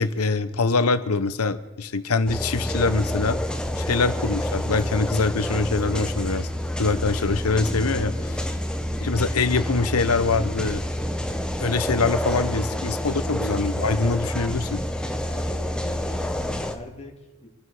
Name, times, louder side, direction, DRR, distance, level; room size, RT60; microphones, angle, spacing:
voice 1, 0.0-3.4 3.8-6.5 6.8-8.1 9.0-10.8 11.6-14.8, left 3 dB, 70° left, 12 dB, 0.9 m, -24 dB
sound 1, 2.3-16.7, equal, 5° left, 1.1 m, -28 dB
voice 2, 8.0-8.6 12.5-13.5 15.2-17.5, left 1 dB, 30° left, 0 dB, 2.7 m, -43 dB
27.0 x 10.0 x 4.9 m, 1.1 s
head